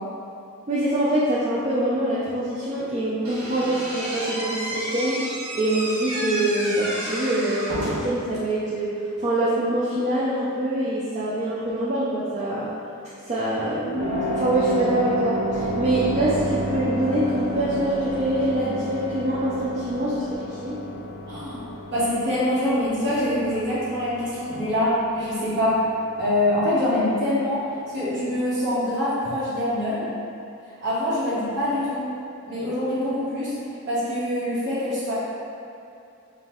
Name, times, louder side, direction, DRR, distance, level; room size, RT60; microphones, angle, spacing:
voice 1, 0.7-5.2 5.5-8.9 9.2-12.7 13.3-20.8, right 1 dB, 30° right, -9 dB, 0.4 m, -24 dB
Slam / Squeak, 3.2-8.2, right 1 dB, 85° right, 1.2 m, -31 dB
sound 1, 14.0-28.9, right 1 dB, 80° left, 0.7 m, -32 dB
voice 2, 21.3-21.6 21.9-25.8 26.1-27.6 27.9-30.1 30.8-32.0 32.5-33.5 33.9-35.2, left 1 dB, 50° right, -11 dB, 1.4 m, -24 dB
4.0 x 2.6 x 3.6 m, 2.6 s
head